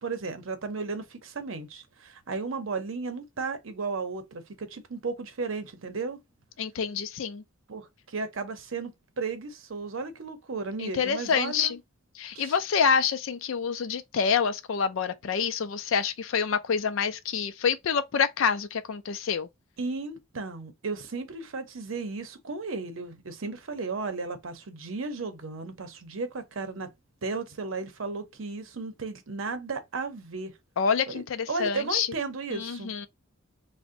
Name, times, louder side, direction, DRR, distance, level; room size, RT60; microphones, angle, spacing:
voice 1, 0.0-6.2 7.7-8.9 9.2-11.7 12.3-12.5 19.8-26.9 27.2-30.5 31.1-31.2 31.5-32.9, right 4 dB, 70° right, 0.7 m, -34 dB
voice 2, 6.6-7.4 10.8-11.8 12.2-19.5 30.8-32.1 32.5-33.1, left 6 dB, 70° left, 0.4 m, -27 dB
2.6 x 2.1 x 3.7 m
head